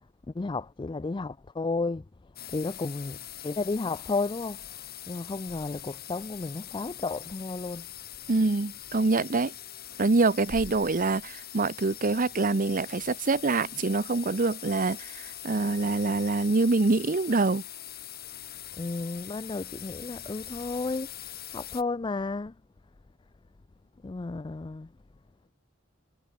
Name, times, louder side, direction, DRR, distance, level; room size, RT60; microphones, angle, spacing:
voice 1, 0.3-2.0 2.5-4.6 5.1-7.9 18.8-21.1 21.5-22.5 24.0-24.9, left 3 dB, 25° left, 0.4 m, -32 dB
sound 1, 2.4-21.8, left 12 dB, 50° left, 5.7 m, -43 dB
voice 2, 8.3-9.5 10.0-17.6, right 3 dB, 40° right, 0.8 m, -25 dB
head